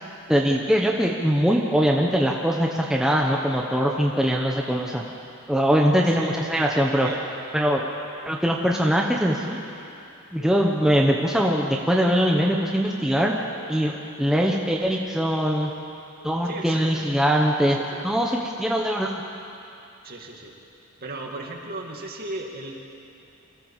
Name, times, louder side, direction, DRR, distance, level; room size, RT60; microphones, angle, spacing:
voice 1, 0.3-5.0 5.5-7.1 7.5-7.8 8.3-9.6 10.3-13.3 13.7-15.7 16.2-17.8 18.0-19.1, equal, ahead, -1 dB, 1.1 m, -22 dB
voice 2, 6.1-7.3 16.4-17.1 17.6-18.1 20.0-20.5 21.0-22.8, right 2 dB, 45° right, 1 dB, 2.4 m, -36 dB
Telephone, 8.0-10.1 10.4-10.7 11.2-11.7 12.2-12.7 13.2-13.7 14.2-14.7 15.2-15.7 16.2-16.7 17.2-17.6, equal, 90° left, 2.5 m, -44 dB
25.5 x 14.5 x 7.4 m, 2.6 s
head